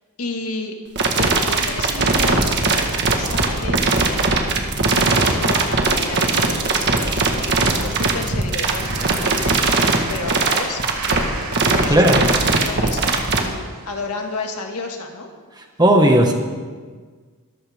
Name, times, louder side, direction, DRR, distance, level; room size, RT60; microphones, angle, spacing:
voice 1, 0.2-0.7 1.2-3.9 4.9-9.7 10.1-11.3 11.7-15.3, left 3 dB, 85° left, 2 dB, 2.2 m, -31 dB
sound 1, 1.0-13.4, right 3 dB, 50° right, 1.7 m, -19 dB
sound 2, 8.8-14.6, right 3 dB, 85° right, 3.4 m, -35 dB
voice 2, 11.9-12.2 15.8-16.3, right 1 dB, 20° right, 2 dB, 1.8 m, -14 dB
24.0 x 14.0 x 3.7 m, 1.5 s
head